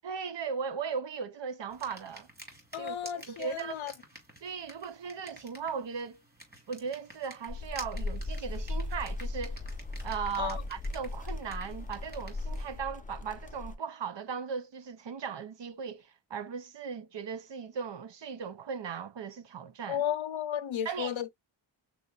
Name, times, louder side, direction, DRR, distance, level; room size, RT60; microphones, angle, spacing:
voice 1, 0.0-2.3 2.8-3.8 4.4-6.2 6.7-9.6 10.0-20.0 20.8-21.1, right 6 dB, 60° right, 0.7 m, -37 dB
sound 1, 1.7-12.8, equal, 20° right, 2.4 m, -51 dB
voice 2, 2.7-3.9 10.4-10.6 19.9-21.3, left 9 dB, 75° left, 0.8 m, -33 dB
sound 2, 7.5-13.7, left 2 dB, 15° left, 0.6 m, -37 dB
6.1 x 2.5 x 2.4 m
wide cardioid pair, 95°, 48 cm